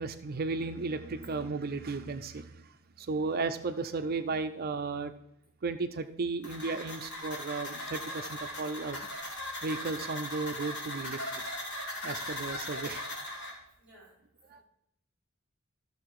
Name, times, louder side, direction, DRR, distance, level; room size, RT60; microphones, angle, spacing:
voice 1, 0.0-2.7 3.0-5.1 5.6-9.1 9.6-11.4 12.0-13.0 14.5-14.6, right 3 dB, 45° right, 8 dB, 0.6 m, -34 dB
sound 1, 6.4-13.5, left 1 dB, 55° left, 3.4 m, -38 dB
voice 2, 13.8-14.1 14.5-14.6, right 1 dB, 5° right, -5 dB, 4.7 m, -58 dB
13.5 x 6.7 x 4.8 m, 0.78 s
head